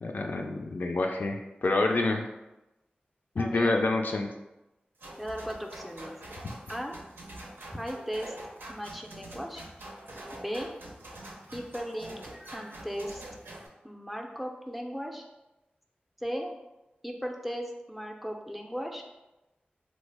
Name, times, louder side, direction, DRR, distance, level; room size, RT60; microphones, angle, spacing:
voice 1, 0.0-2.2 3.4-4.3, left 2 dB, 60° left, 2 dB, 0.3 m, -27 dB
voice 2, 3.4-3.7 5.2-6.2 6.7-7.0 7.7-8.3 8.7-9.6 10.3-10.7 11.5-12.2 12.5-13.1 13.8-15.2 16.2-16.5 17.0-19.0, equal, ahead, 2 dB, 0.4 m, -36 dB
sound 1, 5.0-13.7, right 1 dB, 80° right, 0.6 m, -45 dB
3.1 x 2.1 x 3.3 m, 1.0 s
cardioid pair, 50°, 3 cm